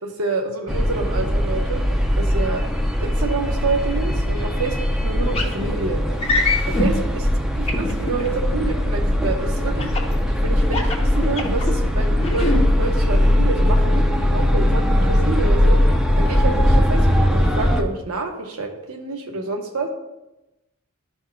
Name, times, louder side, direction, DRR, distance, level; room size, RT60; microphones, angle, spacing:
voice 1, 0.0-1.9 2.1-2.6 3.0-6.0 6.7-7.3 7.8-9.9 10.2-19.9, right 3 dB, 75° right, 3 dB, 1.0 m, -28 dB
sound 1, 0.7-17.8, left 1 dB, 5° right, 0.5 m, -20 dB
sound 2, 5.3-5.5 6.2-6.9 7.7-8.3 9.8-10.1 10.6-11.7 12.2-12.6, left 3 dB, 25° left, 1.0 m, -23 dB
13.0 x 5.5 x 2.3 m, 0.97 s
head